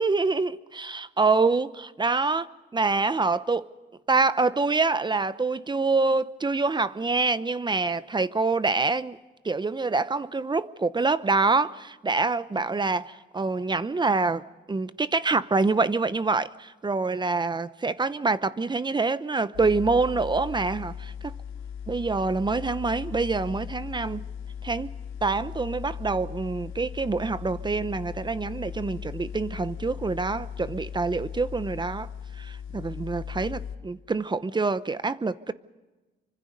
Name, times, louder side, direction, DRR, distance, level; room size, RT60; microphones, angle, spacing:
voice 1, 0.0-2.4 2.7-3.7 4.1-9.2 9.4-14.4 14.7-21.4 21.9-24.2 24.6-24.9 25.2-32.1 32.4-35.5, right 3 dB, 25° right, 0.9 m, -26 dB
sound 1, 19.5-33.8, left 8 dB, 85° left, 1.5 m, -38 dB
27.5 x 25.0 x 5.3 m
cardioid pair, 90°, 20 cm